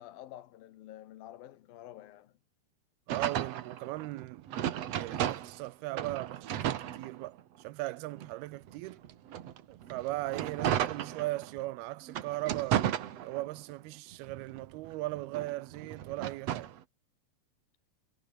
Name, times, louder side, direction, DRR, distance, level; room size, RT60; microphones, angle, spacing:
voice 1, 0.0-2.3, left 13 dB, 75° left, 2.9 m, -49 dB
sound 1, 3.1-5.7 6.0-7.6 8.2-11.6 12.1-13.7 14.1-16.8, right 11 dB, 60° right, 1.9 m, -34 dB
voice 2, 3.1-9.0 9.7-12.9 13.2-16.7, right 19 dB, 85° right, 2.7 m, -38 dB
omnidirectional pair, 4.4 m